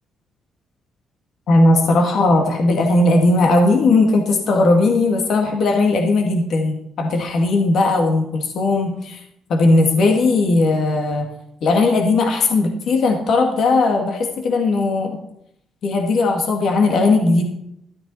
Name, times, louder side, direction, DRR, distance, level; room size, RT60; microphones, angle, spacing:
voice 1, 1.5-9.2 9.5-11.3 11.6-15.2 15.8-17.4, left 2 dB, 65° left, 3 dB, 2.1 m, -17 dB
13.0 x 13.0 x 4.3 m, 0.77 s
cardioid pair, 90°, 0 cm